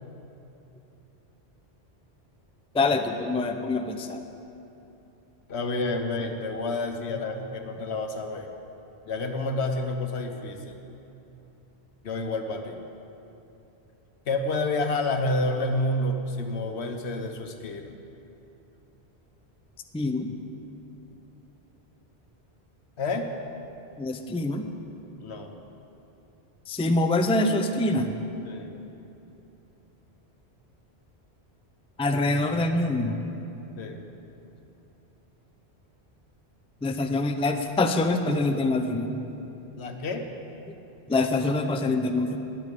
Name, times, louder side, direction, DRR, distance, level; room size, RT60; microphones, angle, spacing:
voice 1, 2.7-4.2 19.9-20.3 24.0-24.7 26.7-28.1 32.0-33.2 36.8-39.2 41.1-42.4, left 2 dB, 10° left, 6 dB, 0.4 m, -25 dB
voice 2, 5.5-8.5 9.1-10.8 12.0-12.8 14.3-17.9 23.0-23.3 25.2-25.5 28.4-28.7 33.8-34.0 39.8-40.3, left 2 dB, 75° left, 5 dB, 1.2 m, -29 dB
9.8 x 8.6 x 9.2 m, 2.9 s
omnidirectional pair, 1.1 m